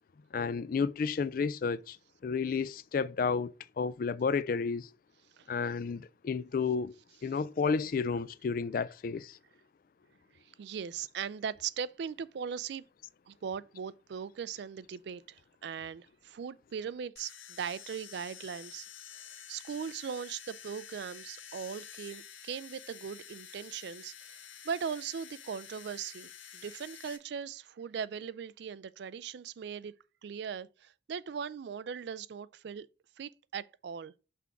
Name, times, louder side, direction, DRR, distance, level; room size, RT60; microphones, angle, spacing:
voice 1, 0.3-2.0 2.2-4.9 5.5-7.0 7.2-9.4, left 5 dB, 45° left, 0.3 m, -31 dB
voice 2, 10.4-12.8 13.3-29.9 30.2-32.9 33.2-34.1, right 7 dB, 60° right, 0.3 m, -39 dB
sound 1, 17.2-27.2, left 9 dB, 80° left, 1.0 m, -49 dB
5.9 x 3.6 x 5.8 m
head